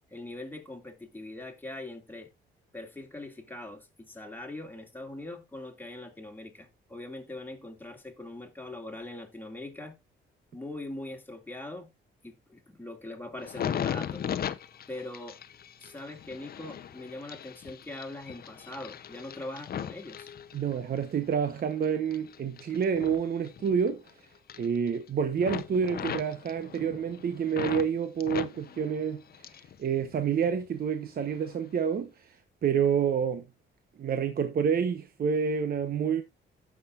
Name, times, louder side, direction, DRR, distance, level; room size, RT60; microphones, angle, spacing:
voice 1, 0.1-2.3 2.7-10.0 10.5-11.9 12.2-14.2 14.9-15.4 15.8-20.3, left 2 dB, 10° left, 2.2 m, -42 dB
sound 1, 13.4-21.0 21.5-24.1 24.4-25.1 25.4-27.9 28.2-29.8 30.1-30.8 31.3-31.5, left 9 dB, 50° left, 0.7 m, -38 dB
voice 2, 20.5-24.0 24.6-29.2 29.8-33.4 34.0-36.2, right 7 dB, 50° right, 0.9 m, -28 dB
15.5 x 6.1 x 2.4 m
cardioid pair, 90°, 20 cm